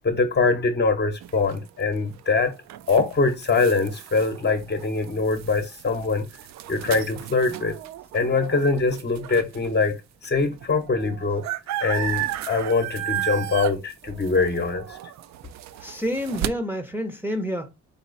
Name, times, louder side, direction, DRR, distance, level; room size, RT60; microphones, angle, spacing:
voice 1, 0.0-2.5 2.9-6.3 6.7-7.7 8.1-10.0 10.2-11.4 11.8-15.0, left 4 dB, 35° left, 0.9 m, -23 dB
sound 1, 1.2-9.7 10.2-10.3 10.5-16.5, right 13 dB, 65° right, 0.4 m, -34 dB
voice 2, 15.8-17.7, equal, 5° right, 0.7 m, -28 dB
4.2 x 3.0 x 4.0 m
cardioid pair, 90°, 30 cm